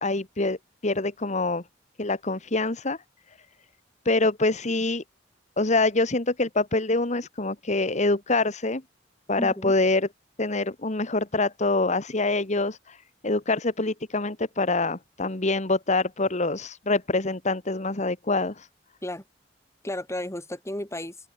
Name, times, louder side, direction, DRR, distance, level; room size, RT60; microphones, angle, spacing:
voice 1, 0.0-0.6 0.8-1.6 2.0-3.0 4.0-5.0 5.6-8.8 9.3-10.1 10.4-13.0 13.2-18.7, left 2 dB, 40° left, 1.7 m, -25 dB
voice 2, 9.4-9.7 19.0-19.2 19.8-21.3, left 1 dB, 15° left, 4.6 m, -33 dB
open air
head